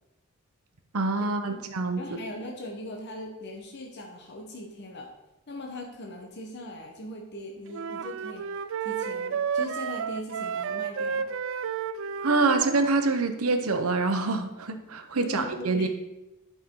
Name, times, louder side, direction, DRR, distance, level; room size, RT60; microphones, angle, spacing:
voice 1, 0.9-2.0 12.2-15.9, right 3 dB, 85° right, 7 dB, 0.9 m, -25 dB
voice 2, 2.0-5.1 5.5-8.5 8.8-11.3 15.2-15.9, left 1 dB, 50° left, 0 dB, 1.0 m, -39 dB
sound 1, 7.7-12.9, right 6 dB, 60° right, 0.4 m, -32 dB
10.5 x 5.6 x 3.8 m, 0.98 s
head